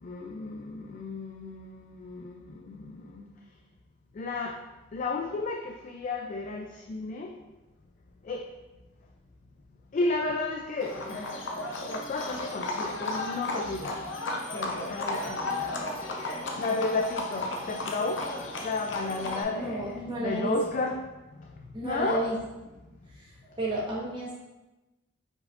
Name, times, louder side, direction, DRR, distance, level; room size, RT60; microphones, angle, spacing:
voice 1, 0.0-3.3 4.1-4.6 4.9-7.3 8.2-8.5 9.9-11.4 11.8-14.1 14.5-16.0 16.6-18.2 18.6-21.0 21.4-21.5 21.8-22.3, left 3 dB, 40° left, 2 dB, 0.3 m, -33 dB
Livestock farm animals working animals, 10.8-19.4, left 2 dB, 75° left, 0.6 m, -34 dB
voice 2, 19.5-20.6 21.7-22.4 23.1-24.3, right 1 dB, 25° right, -6 dB, 1.1 m, -32 dB
4.8 x 4.3 x 2.4 m, 1.1 s
head